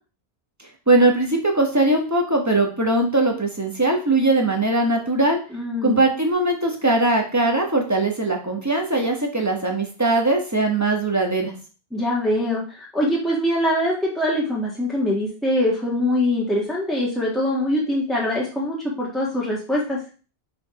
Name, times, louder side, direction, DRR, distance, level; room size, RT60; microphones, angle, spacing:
voice 1, 0.9-5.4 5.8-11.5, right 2 dB, 15° right, 2 dB, 1.3 m, -20 dB
voice 2, 5.5-6.0 11.9-20.0, left 1 dB, ahead, -5 dB, 1.7 m, -23 dB
5.1 x 4.6 x 4.9 m, 0.36 s
omnidirectional pair, 1.1 m